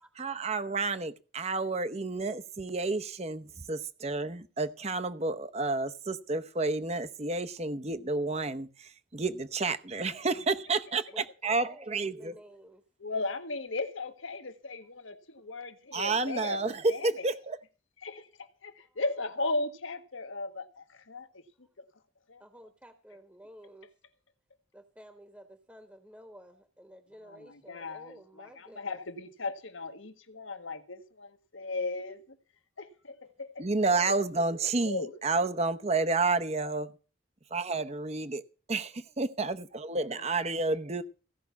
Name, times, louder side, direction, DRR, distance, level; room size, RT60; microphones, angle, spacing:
voice 1, 0.2-12.3 15.9-17.6 33.6-36.9 37.5-38.4 38.7-41.0, right 3 dB, 30° right, 0.8 m, -30 dB
voice 2, 11.1-12.8 15.4-15.5 18.8-19.0 22.4-23.9 24.7-29.0 33.9-34.2, equal, 10° right, 1.1 m, -52 dB
voice 3, 13.0-17.3 18.0-21.4 21.8-21.9 22.3-22.4 27.2-32.4 32.8-33.7 34.7-35.2 40.2-40.3, left 3 dB, 80° left, 1.5 m, -37 dB
16.0 x 5.9 x 8.2 m
head